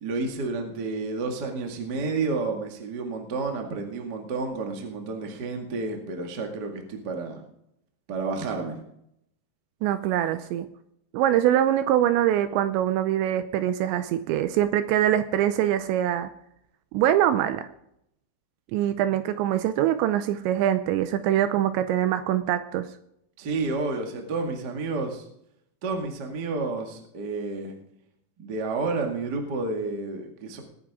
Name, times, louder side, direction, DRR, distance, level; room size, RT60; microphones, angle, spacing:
voice 1, 0.0-7.4 8.1-8.8 23.4-25.2 25.8-27.7 28.4-30.6, right 3 dB, 65° right, 3 dB, 1.0 m, -30 dB
voice 2, 9.8-10.7 11.1-16.3 16.9-17.7 18.7-22.9, right 11 dB, 80° right, 11 dB, 2.7 m, -23 dB
20.0 x 9.7 x 3.7 m, 0.76 s
omnidirectional pair, 5.6 m